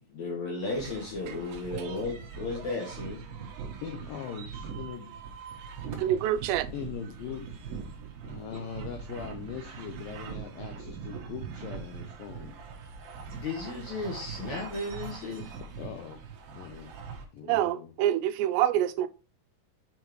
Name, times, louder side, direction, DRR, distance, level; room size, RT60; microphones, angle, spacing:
voice 1, 0.1-3.2 8.5-8.6 13.3-15.5, left 3 dB, 65° left, 1.9 m, -34 dB
sound 1, 0.7-17.3, right 6 dB, 65° right, 2.7 m, -42 dB
voice 2, 3.8-5.1 6.7-7.5 8.2-12.6 15.8-16.3 16.5-17.0 17.3-17.9, left 7 dB, 85° left, 2.0 m, -41 dB
voice 3, 6.0-6.7 17.4-19.1, right 12 dB, 90° right, 2.8 m, -26 dB
7.1 x 5.4 x 3.0 m
omnidirectional pair, 4.9 m